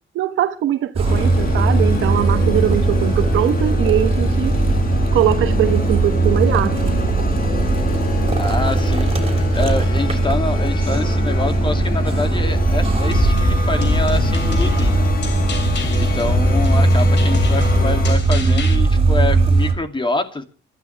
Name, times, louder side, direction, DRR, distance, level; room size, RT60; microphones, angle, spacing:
voice 1, 0.1-4.5 5.1-7.0, right 12 dB, 80° right, 1.2 m, -21 dB
sound 1, 1.0-18.1, left 5 dB, 45° left, 1.9 m, -28 dB
sound 2, 1.0-19.7, right 3 dB, 30° right, 3.4 m, -18 dB
voice 2, 8.3-15.1 16.0-20.4, left 2 dB, 25° left, 2.7 m, -26 dB
sound 3, 13.1-18.7, left 4 dB, 65° left, 3.5 m, -24 dB
27.0 x 12.5 x 3.4 m
cardioid pair, 90°, 20 cm